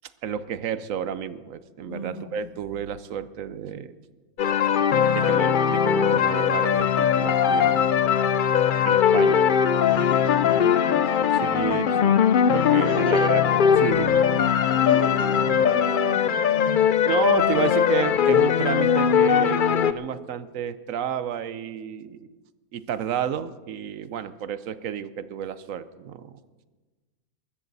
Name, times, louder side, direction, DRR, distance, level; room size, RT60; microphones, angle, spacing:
voice 1, 0.2-3.9 5.1-7.9 8.9-9.5 11.3-14.2 17.1-22.4 22.7-26.4, right 8 dB, 70° right, 14 dB, 1.1 m, -31 dB
voice 2, 1.8-2.4 9.8-12.0 12.5-13.3 14.7-16.8, left 1 dB, 50° left, -4 dB, 3.7 m, -36 dB
sound 1, 4.4-19.9, left 8 dB, 70° left, 0.4 m, -20 dB
23.0 x 13.5 x 4.1 m, 1.3 s
omnidirectional pair, 1.5 m